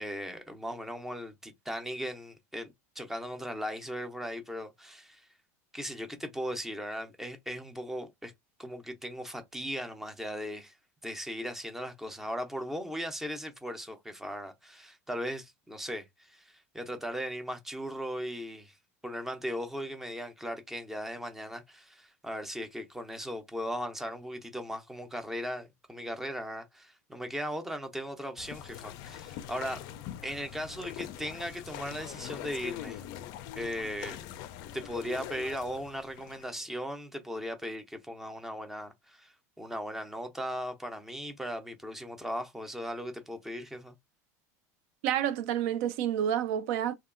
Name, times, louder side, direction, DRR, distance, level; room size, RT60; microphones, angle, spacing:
voice 1, 0.0-5.3 5.7-8.3 8.6-10.7 11.0-18.8 19.0-29.8 30.2-33.0 33.6-34.2 34.7-43.9, equal, 5° right, 0.5 m, -38 dB
sound 1, 28.4-36.6, left 11 dB, 55° left, 0.4 m, -43 dB
voice 2, 45.0-47.0, right 10 dB, 70° right, 0.5 m, -29 dB
2.7 x 2.3 x 2.4 m
supercardioid pair, 130°, 8 cm